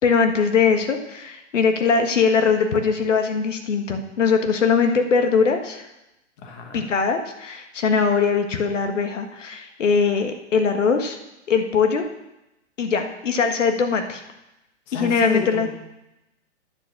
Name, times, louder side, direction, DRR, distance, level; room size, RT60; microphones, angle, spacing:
voice 1, 0.0-5.9 6.7-11.2 11.5-12.0 12.8-14.2 14.9-15.7, left 5 dB, 90° left, 6 dB, 1.6 m, -21 dB
voice 2, 6.4-6.9 14.9-15.7, left 3 dB, 20° left, 2 dB, 1.3 m, -31 dB
9.9 x 6.7 x 7.2 m, 0.92 s
hypercardioid pair, 165°, 36 cm